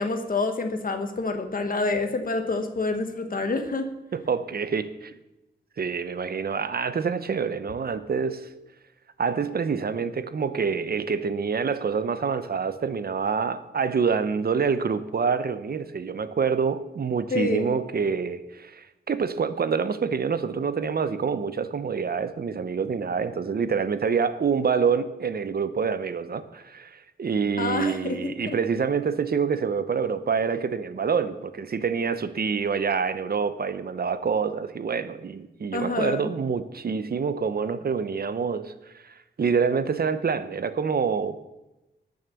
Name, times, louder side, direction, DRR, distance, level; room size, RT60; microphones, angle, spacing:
voice 1, 0.0-3.9 17.3-17.8 27.6-28.3 35.7-36.3, left 3 dB, 50° left, 7 dB, 1.4 m, -27 dB
voice 2, 4.1-5.1 5.8-8.5 9.2-41.4, right 6 dB, 60° right, 12 dB, 0.8 m, -26 dB
19.5 x 6.5 x 7.1 m, 0.99 s
wide cardioid pair, 155°, 18 cm